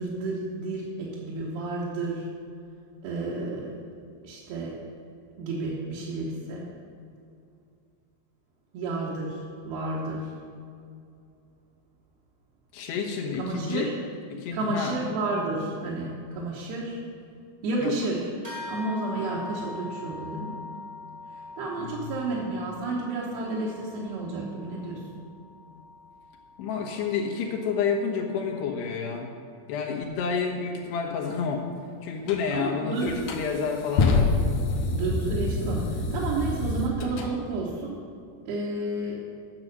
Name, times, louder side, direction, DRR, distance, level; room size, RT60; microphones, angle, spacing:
voice 1, 0.0-2.3 3.0-3.8 4.2-4.8 5.4-6.7 8.7-10.3 13.4-13.9 14.5-17.0 17.6-18.3 18.7-20.6 21.3-25.2 32.5-33.1 34.9-38.0 38.5-39.2, right 2 dB, 75° right, -5 dB, 3.1 m, -31 dB
voice 2, 12.7-13.9 14.3-15.0 17.8-17.9 21.8-22.1 26.6-29.3 29.7-31.7 32.0-34.3, left 6 dB, 90° left, 1 dB, 3.3 m, -29 dB
sound 1, 18.4-28.2, left 3 dB, 40° right, 0.5 m, -43 dB
sound 2, 32.3-32.4 33.0-37.3, left 3 dB, 70° left, 1.9 m, -26 dB
11.0 x 6.2 x 6.7 m, 2.4 s
omnidirectional pair, 4.7 m